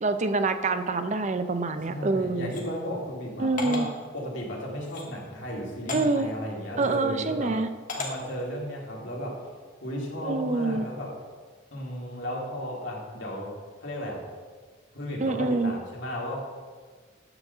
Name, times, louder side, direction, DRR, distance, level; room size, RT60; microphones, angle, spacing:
voice 1, 0.0-2.5 3.4-3.9 5.9-6.3 6.8-7.7 10.2-10.9 15.2-15.7, right 3 dB, 35° right, 9 dB, 0.5 m, -26 dB
voice 2, 1.9-3.9 4.1-7.5 8.0-9.4 9.8-11.1 11.7-14.2 14.9-16.4, equal, 70° left, -3 dB, 2.3 m, -34 dB
sound 1, 2.5-2.6 3.6-3.9 4.8-5.1 5.9-6.0 6.8-7.0 7.9-8.1, left 2 dB, 40° left, 1.5 m, -34 dB
9.6 x 4.9 x 6.7 m, 1.5 s
head